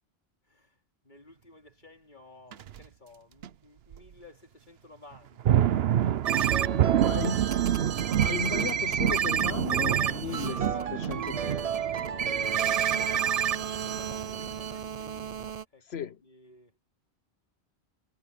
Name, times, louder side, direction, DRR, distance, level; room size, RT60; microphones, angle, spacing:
voice 1, 0.4-0.8 1.0-5.7 6.4-7.2 9.9-15.4 15.7-16.8, left 2 dB, 45° left, 3.4 m, -52 dB
sound 1, 2.5-2.8 3.4-3.5 3.9-4.0 5.1-15.5, right 10 dB, 75° right, 0.9 m, -29 dB
sound 2, 6.2-15.6, right 8 dB, 45° right, 0.6 m, -30 dB
voice 2, 7.1-7.5 8.2-11.5 15.8-16.2, left 9 dB, 80° left, 1.0 m, -36 dB
omnidirectional pair, 1.1 m